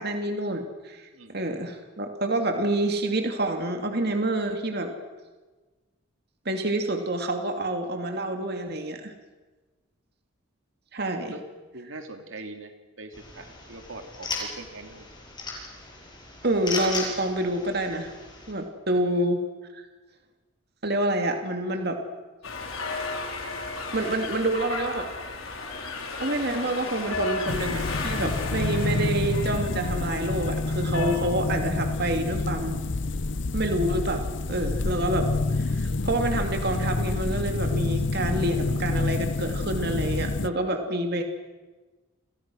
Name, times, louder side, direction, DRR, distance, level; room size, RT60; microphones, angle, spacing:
voice 1, 0.0-4.9 6.5-9.1 10.9-11.3 16.4-18.1 18.5-19.4 19.7-19.8 20.8-22.0 23.9-25.1 26.2-32.8 33.5-35.3 35.6-41.2, right 1 dB, 50° right, 5 dB, 2.5 m, -27 dB
voice 2, 1.1-1.7 11.3-11.4 11.7-15.1 19.1-19.2, right 2 dB, 70° right, 6 dB, 2.7 m, -43 dB
sound 1, 13.1-18.5, left 3 dB, 20° left, 7.1 m, -36 dB
sound 2, 22.4-31.2, left 3 dB, 80° left, 4.7 m, -34 dB
sound 3, 27.5-40.5, left 2 dB, 55° left, 0.8 m, -28 dB
30.0 x 28.5 x 6.3 m, 1.3 s
head